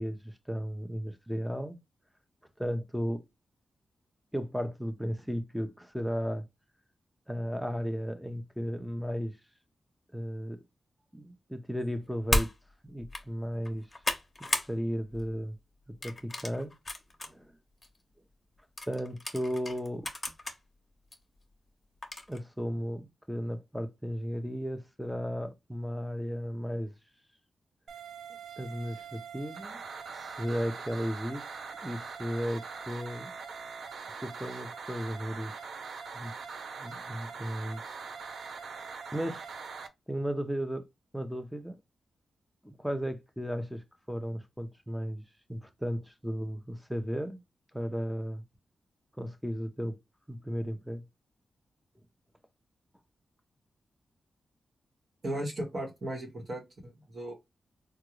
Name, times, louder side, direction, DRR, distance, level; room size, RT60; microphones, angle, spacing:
voice 1, 0.0-1.8 2.6-3.2 4.3-6.4 7.3-9.4 10.1-10.6 11.1-12.5 12.8-13.9 14.5-15.6 15.9-16.7 17.3-17.6 18.9-20.1 22.3-26.9 28.6-29.8 30.1-31.5 31.8-33.3 34.1-35.6 36.1-36.3 36.8-37.8 38.6-39.5 40.1-40.9 41.1-41.7 42.6-45.2 45.5-47.4 47.7-48.4 49.2-50.0 50.3-51.0, equal, ahead, 0.7 m, -35 dB
Bolt Action Rifle Reload, 12.3-12.5 13.0-13.2 13.6-14.7 15.1-15.4 16.0-17.3 17.8-17.9 18.8-20.6 21.1-21.2 22.0-22.4, left 2 dB, 30° left, 0.9 m, -33 dB
sound 1, 27.9-39.9, right 5 dB, 80° right, 0.5 m, -42 dB
voice 2, 55.2-57.3, right 1 dB, 50° right, 1.2 m, -36 dB
3.6 x 2.3 x 3.0 m
cardioid pair, 70°, 0 cm